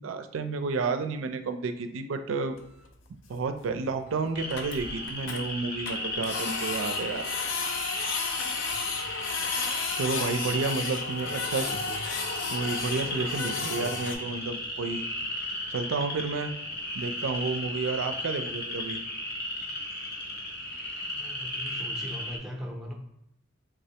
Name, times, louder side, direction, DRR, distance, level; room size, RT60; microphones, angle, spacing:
voice 1, 0.0-2.6 3.3-7.3 9.9-11.7 12.5-15.0 15.7-16.5 16.9-19.0, right 4 dB, 80° right, 8 dB, 0.4 m, -31 dB
Printer, 2.6-2.7 2.9-3.0 3.3-3.4 3.7-3.8 4.1-4.2 4.4-5.4 5.9-14.2, left 5 dB, 70° left, 0.5 m, -33 dB
sound 1, 4.3-22.4, left 1 dB, 50° left, 0.8 m, -35 dB
voice 2, 8.6-9.1 10.9-12.0 13.5-14.4 20.9-22.9, equal, ahead, 0 dB, 0.5 m, -42 dB
3.6 x 3.1 x 2.8 m, 0.82 s
head